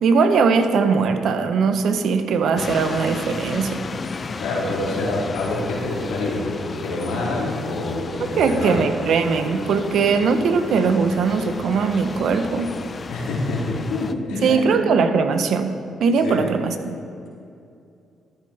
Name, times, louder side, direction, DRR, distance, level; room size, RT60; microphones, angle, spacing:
voice 1, 0.0-3.8 8.4-12.7 14.4-16.9, right 5 dB, 70° right, 8 dB, 0.8 m, -20 dB
sound 1, 2.6-14.1, left 4 dB, 40° left, 0.5 m, -33 dB
voice 2, 4.4-8.9 13.1-14.9 16.2-16.5, left 2 dB, 80° left, -4 dB, 2.4 m, -26 dB
13.5 x 8.7 x 3.3 m, 2.5 s
supercardioid pair, 55°, 0 cm